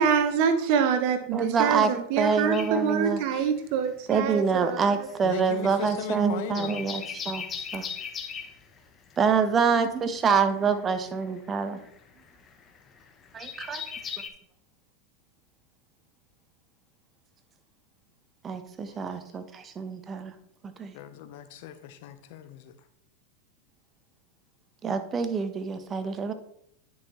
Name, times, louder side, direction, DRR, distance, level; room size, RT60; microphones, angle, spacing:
voice 1, 0.0-4.9, right 6 dB, 60° right, 1.0 m, -25 dB
voice 2, 1.3-3.2 4.1-7.9 9.2-11.8 13.3-13.8 18.4-20.3 20.6-20.9 24.8-26.3, right 5 dB, 30° right, 0.9 m, -26 dB
sound 1, 2.5-3.9 4.2-14.3, left 7 dB, 30° left, 0.9 m, -39 dB
voice 3, 5.2-6.9 18.9-19.0 20.9-22.7, left 10 dB, 60° left, 0.8 m, -38 dB
9.8 x 5.7 x 3.1 m
hypercardioid pair, 95°, 0 cm